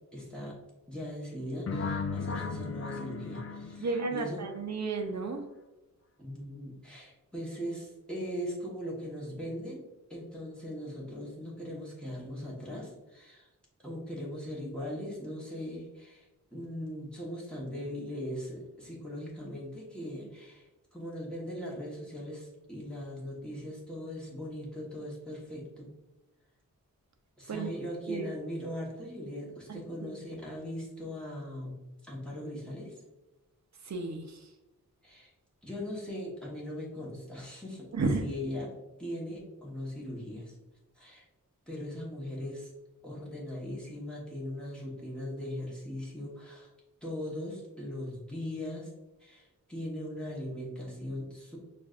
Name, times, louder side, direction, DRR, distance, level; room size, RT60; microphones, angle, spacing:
voice 1, 0.1-0.6 0.9-4.4 6.2-9.8 10.1-13.5 13.8-25.9 27.4-33.0 35.0-35.3 35.6-37.9 38.2-38.7 39.0-40.6 40.9-41.2 41.7-42.7 43.0-46.7 47.0-48.9 49.2-51.6, left 1 dB, 5° left, -5 dB, 1.2 m, -39 dB
sound 1, 1.7-4.5, left 4 dB, 45° left, 0.4 m, -36 dB
voice 2, 3.8-5.4 27.5-27.8 28.1-28.3 29.7-29.8 33.8-34.5 37.9-38.2, right 3 dB, 55° right, 4 dB, 0.6 m, -33 dB
6.1 x 2.5 x 2.4 m, 1.0 s
wide cardioid pair, 105°, 33 cm